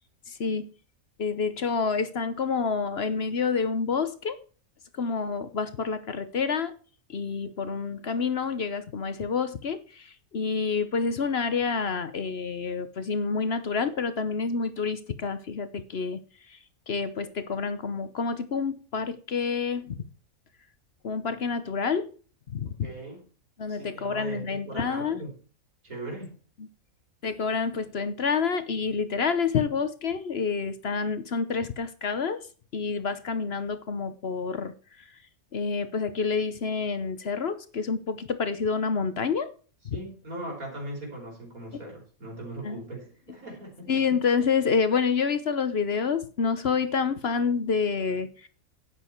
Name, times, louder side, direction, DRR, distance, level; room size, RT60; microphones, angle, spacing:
voice 1, 0.3-0.6 1.2-4.4 4.9-6.7 7.1-16.2 16.5-16.6 16.9-20.0 21.0-22.1 22.5-22.7 23.6-25.2 27.2-32.5 32.7-34.7 35.5-39.5 39.8-40.0 41.7-41.8 42.6-42.8 43.9-48.5, left 5 dB, 50° left, 1.0 m, -28 dB
voice 2, 22.8-23.2 23.7-25.4 25.8-26.4 39.9-43.9, right 1 dB, 85° right, 5.5 m, -39 dB
12.0 x 9.0 x 4.5 m
omnidirectional pair, 1.5 m